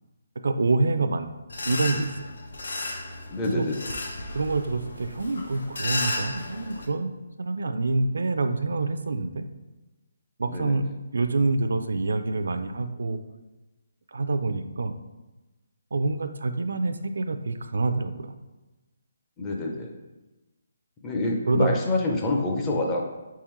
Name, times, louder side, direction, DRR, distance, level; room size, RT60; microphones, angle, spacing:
voice 1, 0.4-1.3 1.6-2.1 3.5-3.7 4.3-9.4 10.4-10.8 11.1-13.2 14.1-15.0 15.9-18.3 21.5-21.7, right 3 dB, 75° right, 9 dB, 0.3 m, -26 dB
sound 1, 1.5-6.9, left 2 dB, 75° left, 0.7 m, -34 dB
voice 2, 3.3-4.0 10.5-10.8 19.4-19.9 21.0-23.1, left 2 dB, 15° left, 0 dB, 0.4 m, -27 dB
4.6 x 3.6 x 3.0 m, 1.1 s
hypercardioid pair, 170°, 0 cm